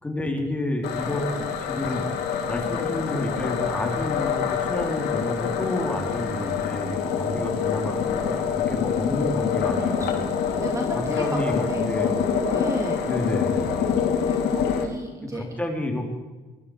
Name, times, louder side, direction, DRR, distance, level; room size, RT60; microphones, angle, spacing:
voice 1, 0.0-2.1 2.5-10.3 11.2-12.2 13.0-13.9 15.3-16.1, left 1 dB, 10° left, 2 dB, 3.6 m, -30 dB
sound 1, 0.8-14.8, left 7 dB, 80° left, 3.3 m, -26 dB
voice 2, 9.6-13.3 14.1-15.5, right 1 dB, 20° right, 2 dB, 2.2 m, -35 dB
22.5 x 13.0 x 4.9 m, 1.3 s
cardioid pair, 110°, 17 cm